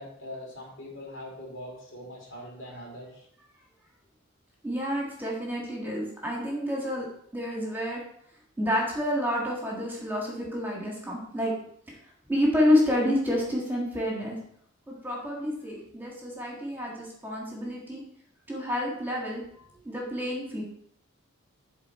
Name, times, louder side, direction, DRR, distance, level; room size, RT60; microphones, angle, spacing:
voice 1, 0.0-3.3, left 1 dB, 65° left, -2 dB, 2.8 m, -42 dB
voice 2, 4.6-7.1 7.3-8.0 8.6-11.5 12.3-14.3 14.9-18.0 18.5-20.6, left 1 dB, 10° right, -3 dB, 1.7 m, -29 dB
11.5 x 3.9 x 4.4 m, 0.68 s
head